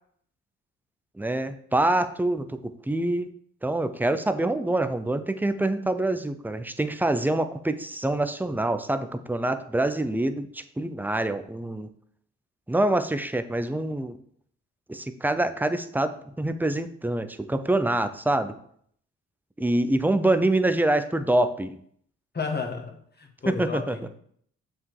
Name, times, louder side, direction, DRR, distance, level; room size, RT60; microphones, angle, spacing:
voice 1, 1.2-2.6 2.9-3.3 3.6-11.9 12.7-14.2 14.9-18.5 19.6-21.8 23.5-24.0, right 1 dB, 5° right, 10 dB, 0.7 m, -25 dB
voice 2, 22.3-24.2, left 4 dB, 35° left, 3 dB, 1.8 m, -33 dB
7.4 x 6.1 x 4.8 m, 0.64 s
cardioid pair, 90°, 30 cm